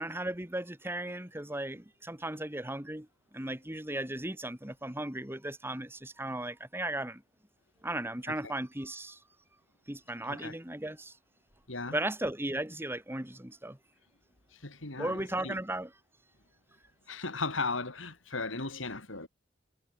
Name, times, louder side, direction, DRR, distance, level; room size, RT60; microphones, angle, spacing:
voice 1, 0.0-3.1 3.3-7.2 7.8-9.2 9.9-11.1 11.9-13.8 15.0-15.9, right 1 dB, 10° right, 2.3 m, -36 dB
voice 2, 14.6-15.6 17.1-19.3, left 3 dB, 80° left, 4.3 m, -36 dB
head